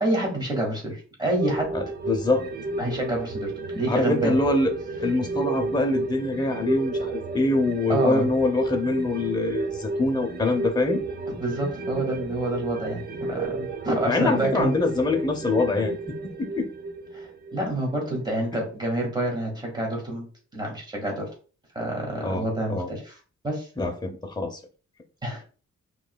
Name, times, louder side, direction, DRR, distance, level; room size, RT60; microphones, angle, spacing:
voice 1, 0.0-1.8 2.8-4.3 7.9-8.2 11.4-13.0 13.3-14.8 17.1-20.3 20.5-21.3 21.8-23.2 23.4-23.7 25.2-25.4, right 1 dB, 15° right, -1 dB, 1.7 m, -28 dB
sound 1, 1.4-18.2 18.5-18.6, right 3 dB, 35° right, 0.5 m, -32 dB
voice 2, 1.7-2.5 3.9-4.7 5.0-11.0 14.0-16.7 22.2-22.9 23.8-24.6, left 2 dB, 15° left, 3 dB, 0.7 m, -24 dB
5.3 x 3.2 x 2.2 m, 0.37 s
wide cardioid pair, 155°, 29 cm